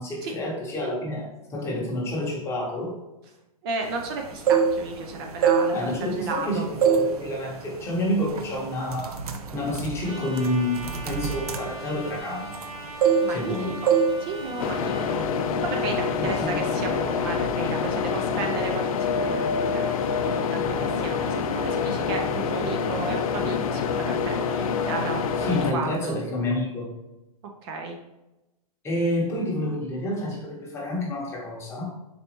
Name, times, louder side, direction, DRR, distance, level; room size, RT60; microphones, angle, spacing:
voice 1, 0.0-3.0 5.7-9.2 9.5-12.5 13.3-13.8 16.2-16.6 25.4-26.9 28.8-31.9, left 1 dB, 15° left, -3 dB, 0.9 m, -29 dB
voice 2, 3.6-5.8 6.1-6.7 13.2-13.9 14.2-26.2 27.6-28.0, right 3 dB, 40° right, 3 dB, 0.5 m, -33 dB
sound 1, 4.2-5.0 5.4-6.4 6.8-7.2 7.5-7.8 8.4-8.5 8.9-12.7 13.0-13.6 13.9-14.2 14.4-14.7, right 7 dB, 85° right, 0.6 m, -23 dB
Trumpet, 10.0-15.1, right 1 dB, 65° right, 1.1 m, -40 dB
sound 2, 14.6-25.7, left 6 dB, 70° left, 0.4 m, -26 dB
4.1 x 3.3 x 2.9 m, 0.98 s
hypercardioid pair, 150°, 19 cm